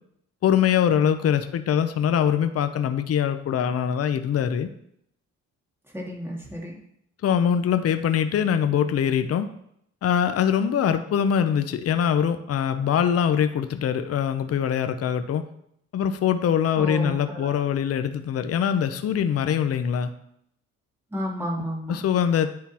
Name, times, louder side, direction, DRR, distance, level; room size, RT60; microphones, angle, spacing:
voice 1, 0.4-4.7 7.2-9.5 10.0-15.5 15.9-20.1 21.9-22.5, left 8 dB, 50° left, 9 dB, 0.7 m, -23 dB
voice 2, 5.9-6.8 16.7-17.5 21.1-22.0, equal, 10° right, -3 dB, 2.5 m, -32 dB
9.5 x 3.9 x 4.3 m, 0.72 s
cardioid pair, 90°, 30 cm